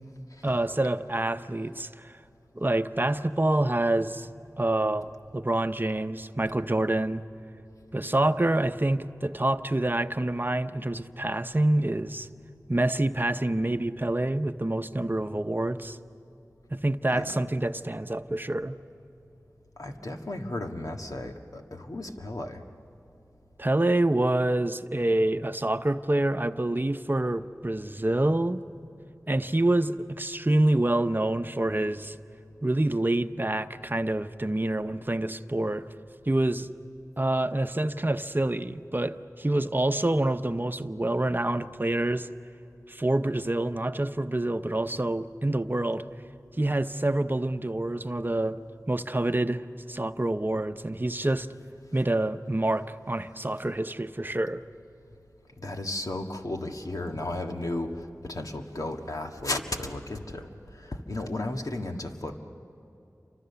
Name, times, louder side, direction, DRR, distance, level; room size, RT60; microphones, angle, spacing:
voice 1, 0.4-2.1 2.6-4.3 4.6-7.2 7.9-12.3 12.7-16.0 16.7-18.8 23.6-28.6 29.3-32.1 32.6-35.9 36.3-36.7 37.2-42.3 42.9-46.0 46.6-48.6 48.9-51.5 51.9-54.6, right 1 dB, 35° right, 9 dB, 0.8 m, -27 dB
voice 2, 19.8-22.6 55.6-57.9 58.2-60.5 60.8-62.4, left 2 dB, 75° left, 3 dB, 1.7 m, -34 dB
29.0 x 25.0 x 7.0 m, 2.9 s
wide cardioid pair, 40°, 6 cm